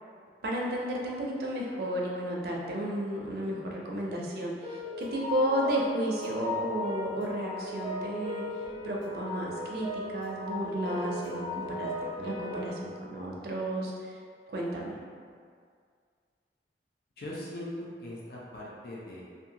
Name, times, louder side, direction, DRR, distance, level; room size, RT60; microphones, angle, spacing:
voice 1, 0.4-8.4 8.8-11.9 12.2-13.9 14.5-14.9, right 1 dB, 55° right, -2 dB, 0.4 m, -32 dB
sound 1, 4.6-12.7, left 1 dB, 30° left, 0.8 m, -37 dB
voice 2, 17.2-19.3, left 1 dB, 55° left, -5 dB, 0.4 m, -40 dB
2.7 x 2.2 x 2.7 m, 2.1 s
head